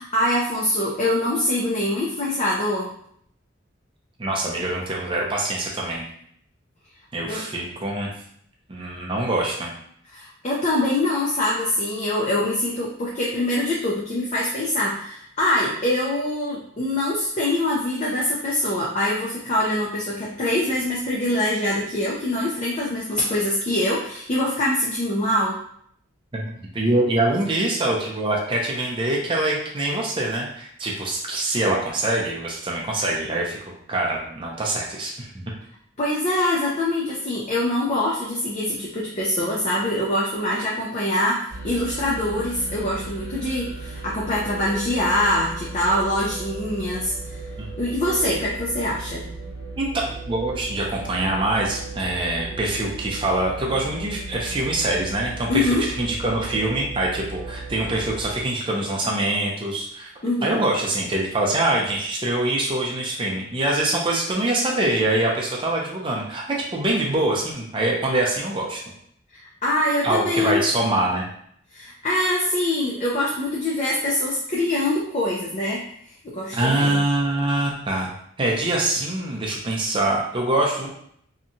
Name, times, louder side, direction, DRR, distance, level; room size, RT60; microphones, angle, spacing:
voice 1, 0.0-2.9 7.3-7.4 10.1-25.6 36.0-47.4 47.8-49.3 55.5-55.9 60.2-60.6 69.3-70.7 71.7-75.8 76.2-77.0, left 1 dB, 35° left, -5 dB, 0.4 m, -24 dB
voice 2, 4.2-6.0 7.1-8.1 8.7-9.7 26.3-33.6 33.9-35.5 47.6-47.7 49.8-60.1 60.4-68.8 70.0-71.3 76.5-78.1 78.4-80.9, right 1 dB, 25° right, -2 dB, 0.5 m, -24 dB
sound 1, 41.5-58.4, right 3 dB, 60° left, 1.4 m, -36 dB
2.8 x 2.2 x 2.6 m, 0.66 s
head